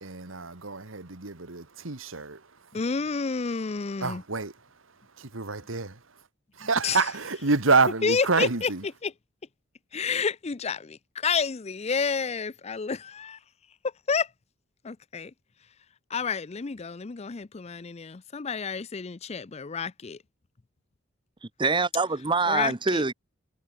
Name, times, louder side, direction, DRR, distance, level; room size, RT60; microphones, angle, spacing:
voice 1, 0.0-2.5 4.0-4.5 5.2-6.0 6.6-8.8, right 4 dB, 85° right, 2.0 m, -27 dB
voice 2, 2.7-4.2 6.8-7.0 8.0-8.7 9.0-9.1 9.9-13.4 14.1-14.3 14.8-15.3 16.1-20.2 22.5-23.0, left 5 dB, 35° left, 0.5 m, -30 dB
voice 3, 21.4-23.1, right 4 dB, 25° right, 0.8 m, -25 dB
head